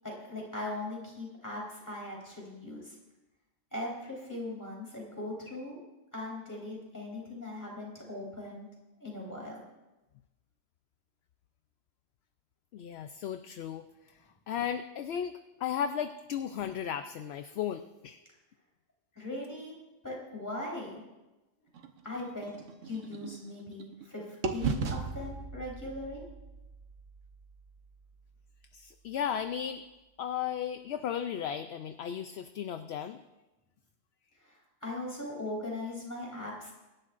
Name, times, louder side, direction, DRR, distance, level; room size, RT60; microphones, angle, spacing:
voice 1, 0.0-2.9 3.7-5.8 6.1-8.7 9.0-9.6 19.1-19.8 20.0-20.9 22.0-22.5 22.8-26.2 34.4-36.7, left 2 dB, 15° left, -4 dB, 4.0 m, -39 dB
voice 2, 12.7-13.8 14.5-15.3 15.6-18.2 28.7-29.8 30.2-33.2, left 8 dB, 65° left, 9 dB, 0.8 m, -35 dB
sound 1, 21.7-24.1 24.4-28.4, right 5 dB, 85° right, 1.3 m, -38 dB
24.5 x 11.0 x 2.5 m, 1.0 s
omnidirectional pair, 1.3 m